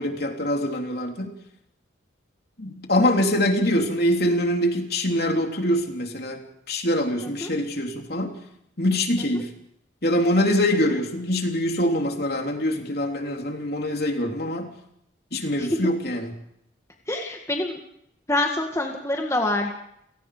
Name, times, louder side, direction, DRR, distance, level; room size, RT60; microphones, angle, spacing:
voice 1, 0.0-1.3 2.6-8.4 8.8-9.5 10.0-14.7 15.3-16.3, left 1 dB, 55° left, 2 dB, 3.5 m, -24 dB
voice 2, 17.1-17.8 18.3-19.7, left 1 dB, 15° left, 1 dB, 2.0 m, -26 dB
29.5 x 18.5 x 5.1 m, 0.75 s
head